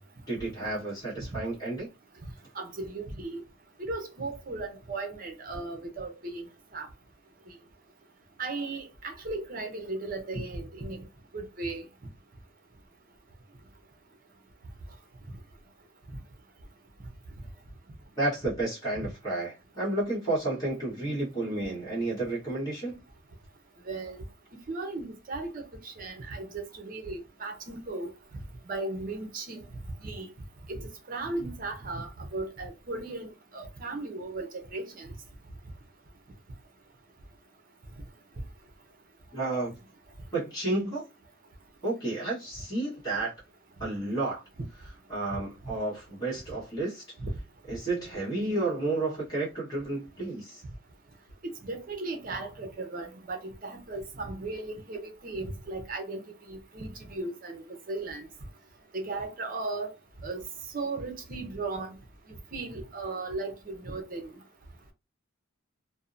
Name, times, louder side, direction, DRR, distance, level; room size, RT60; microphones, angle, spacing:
voice 1, 0.3-1.9 18.2-23.0 39.3-39.7 40.3-41.0 41.8-43.3 43.8-44.4 45.1-47.0 47.7-50.6, right 2 dB, 20° left, 1.1 m, -31 dB
voice 2, 2.6-3.4 3.8-6.4 6.7-6.9 8.4-11.0 11.3-11.9 23.9-24.2 24.7-28.1 28.7-29.6 30.0-30.3 30.7-30.8 31.1-33.3 33.5-35.1 47.2-47.3 51.4-56.2 56.5-57.6 57.9-58.3 58.9-59.9 60.2-60.4 60.7-62.0 62.5-64.3, right 2 dB, 40° right, 0.6 m, -36 dB
2.6 x 2.1 x 2.5 m
head